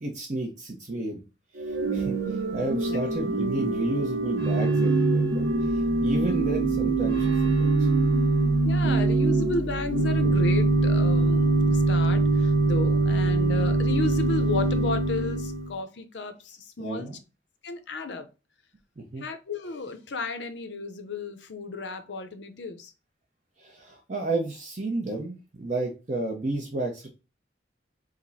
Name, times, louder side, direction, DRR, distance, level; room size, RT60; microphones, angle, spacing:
voice 1, 0.0-1.2 1.7-2.2 2.5-5.4 5.7-7.9 16.8-17.1 19.0-19.2 23.6-27.1, right 2 dB, 40° right, 0.7 m, -31 dB
Organ / Church bell, 1.6-15.7, right 3 dB, 90° right, 0.8 m, -23 dB
voice 2, 8.6-17.1 17.6-18.3 19.2-22.9, left 3 dB, 75° left, 0.7 m, -33 dB
4.9 x 2.1 x 3.9 m
head